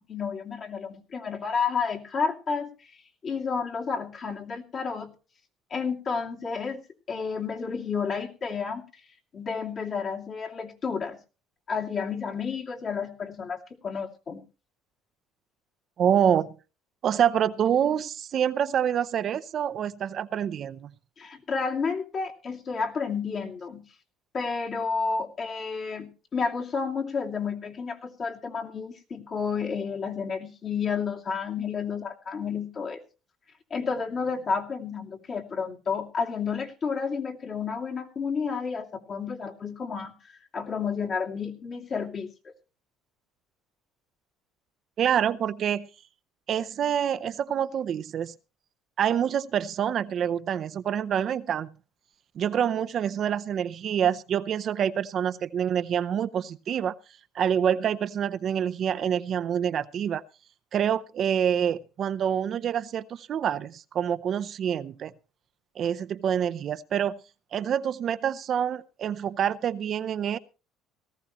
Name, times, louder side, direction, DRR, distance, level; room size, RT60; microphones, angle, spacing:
voice 1, 0.1-2.7 3.2-5.1 5.7-6.8 7.1-8.8 9.3-11.2 11.7-14.4 21.2-23.8 24.3-33.0 33.7-42.5, left 5 dB, 45° left, 1 dB, 2.5 m, -31 dB
voice 2, 16.0-16.6 17.0-20.9 45.0-45.9 46.5-48.3 49.0-51.7 52.4-56.9 57.3-60.2 60.7-65.1 65.8-67.2 67.5-70.4, right 9 dB, 50° right, 12 dB, 0.6 m, -26 dB
18.0 x 14.0 x 3.0 m, 0.32 s
supercardioid pair, 95°, 0 cm